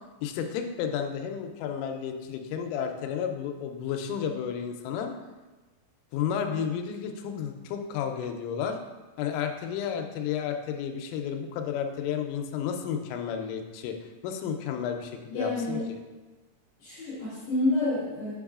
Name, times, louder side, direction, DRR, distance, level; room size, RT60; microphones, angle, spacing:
voice 1, 0.2-5.1 6.1-8.8 9.2-15.8, left 8 dB, 85° left, 5 dB, 3.1 m, -32 dB
voice 2, 15.3-15.8 16.8-18.3, left 2 dB, 55° left, -11 dB, 2.9 m, -28 dB
8.5 x 5.3 x 2.4 m, 1.2 s
omnidirectional pair, 5.6 m